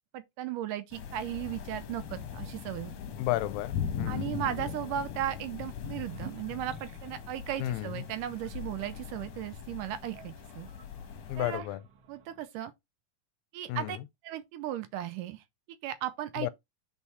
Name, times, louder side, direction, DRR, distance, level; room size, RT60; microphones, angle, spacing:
voice 1, 0.1-2.9 4.1-10.7 11.4-11.7 12.1-12.7 13.5-14.0 14.2-15.4 15.8-16.5, right 12 dB, 80° right, 2.0 m, -36 dB
sound 1, 0.9-11.6, left 8 dB, 65° left, 1.8 m, -40 dB
voice 2, 3.2-4.3 7.6-8.0 11.3-11.8 13.7-14.0 16.4-16.5, left 15 dB, 85° left, 2.2 m, -32 dB
sound 2, 6.0-12.4, right 6 dB, 65° right, 1.5 m, -53 dB
5.5 x 4.4 x 4.8 m
omnidirectional pair, 4.1 m